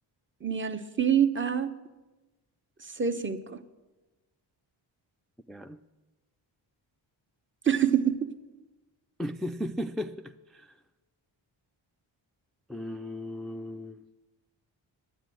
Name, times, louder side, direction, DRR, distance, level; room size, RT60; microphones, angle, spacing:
voice 1, 0.4-1.8 2.8-3.6 7.6-8.3, right 8 dB, 25° right, 0.9 m, -26 dB
voice 2, 5.5-5.8 9.2-10.7 12.7-14.0, left 1 dB, ahead, 0.3 m, -36 dB
10.5 x 9.0 x 7.6 m
cardioid pair, 75°, 48 cm